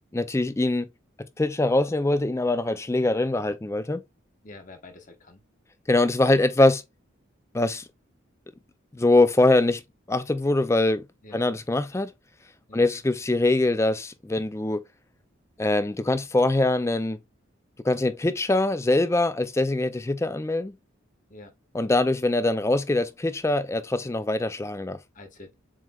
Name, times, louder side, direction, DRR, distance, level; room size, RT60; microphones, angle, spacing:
voice 1, 0.1-0.9 1.4-4.0 5.9-6.8 7.5-7.8 8.9-9.8 10.1-11.0 11.3-12.1 12.7-14.8 15.6-17.2 17.8-20.7 21.7-25.0, left 2 dB, 15° left, 0.4 m, -23 dB
voice 2, 4.4-5.4 11.2-11.5 12.7-12.9 21.3-21.5 25.1-25.5, left 2 dB, 40° left, 1.1 m, -46 dB
7.3 x 3.2 x 2.3 m
head